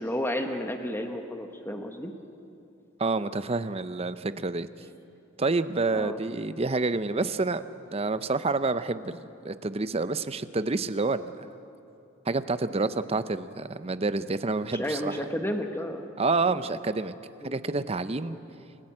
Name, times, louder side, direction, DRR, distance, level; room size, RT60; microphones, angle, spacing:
voice 1, 0.0-2.1 5.9-6.2 14.7-16.1 17.4-17.6 18.2-18.4, equal, 10° left, 5 dB, 1.3 m, -32 dB
voice 2, 3.0-4.7 5.4-7.6 7.9-11.3 12.3-15.2 16.2-17.1 17.4-18.4, right 3 dB, 30° right, 13 dB, 0.6 m, -28 dB
28.0 x 15.0 x 8.7 m, 2.7 s
head